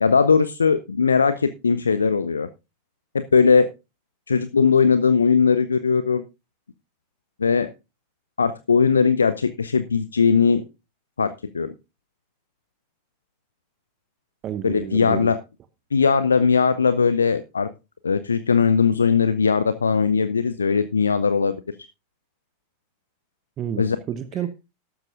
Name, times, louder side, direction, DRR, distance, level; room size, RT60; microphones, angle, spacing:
voice 1, 0.0-2.5 3.1-3.7 4.3-6.2 7.4-7.7 8.4-10.6 11.2-11.7 14.6-15.4 15.9-17.7 18.0-21.6 23.8-24.0, left 5 dB, 75° left, 0.5 m, -19 dB
voice 2, 14.4-15.3 23.6-24.5, right 10 dB, 30° right, 0.8 m, -30 dB
13.5 x 12.0 x 2.5 m
figure-of-eight pair, 90°, 0 cm